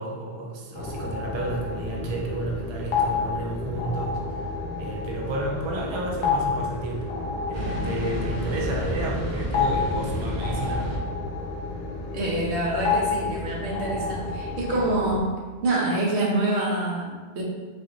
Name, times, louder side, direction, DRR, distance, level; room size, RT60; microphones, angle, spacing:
voice 1, 0.0-4.2 4.8-7.1 7.5-11.0, right 2 dB, 40° right, -1 dB, 0.4 m, -31 dB
sound 1, 0.8-15.2, left 4 dB, 70° left, 0.8 m, -30 dB
sound 2, 7.5-11.0, equal, 55° right, 1.2 m, -30 dB
voice 2, 12.1-15.3 15.6-17.4, right 2 dB, 85° right, -3 dB, 1.1 m, -26 dB
3.9 x 3.0 x 2.5 m, 1.4 s
omnidirectional pair, 1.1 m